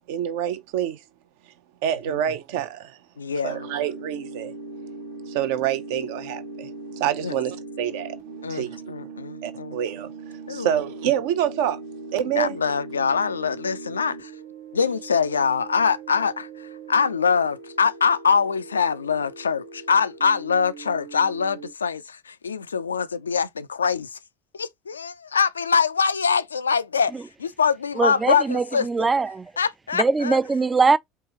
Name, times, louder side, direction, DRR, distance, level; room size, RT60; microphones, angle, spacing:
voice 1, 0.1-1.0 1.8-3.0 3.4-4.5 5.3-6.7 7.0-8.2 8.5-8.9 9.4-11.8 12.1-12.6, right 10 dB, 60° right, 0.6 m, -27 dB
voice 2, 3.2-3.6 7.2-7.4 8.4-9.8 10.5-10.8 12.3-14.3 14.7-24.2 24.5-27.1 27.4-29.1 29.6-30.4, left 6 dB, 80° left, 0.3 m, -24 dB
sound 1, 3.5-21.7, right 3 dB, 75° right, 1.0 m, -40 dB
voice 3, 28.0-29.5 29.9-31.0, right 4 dB, 20° right, 0.3 m, -22 dB
4.6 x 2.9 x 2.9 m
figure-of-eight pair, 65°, 0 cm